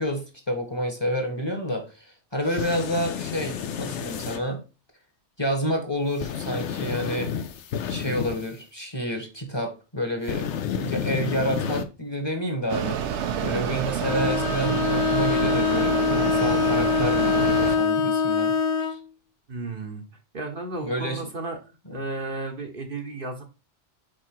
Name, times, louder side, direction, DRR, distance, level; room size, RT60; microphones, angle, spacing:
voice 1, 0.0-4.6 5.4-7.3 7.9-13.0 13.4-18.5 18.8-19.0 20.8-21.3 21.9-22.0, equal, 20° left, 4 dB, 1.3 m, -29 dB
sound 1, 2.5-4.4 6.2-8.5 10.3-11.8, left 8 dB, 75° left, 1.0 m, -31 dB
Mechanisms, 12.7-17.8, right 8 dB, 75° right, 1.0 m, -28 dB
Bowed string instrument, 14.0-19.0, left 6 dB, 55° left, 0.4 m, -23 dB
voice 2, 19.5-20.0 20.3-21.6 21.9-23.4, right 2 dB, 50° right, 3 dB, 1.1 m, -33 dB
5.1 x 4.6 x 4.5 m, 0.31 s
omnidirectional pair, 1.2 m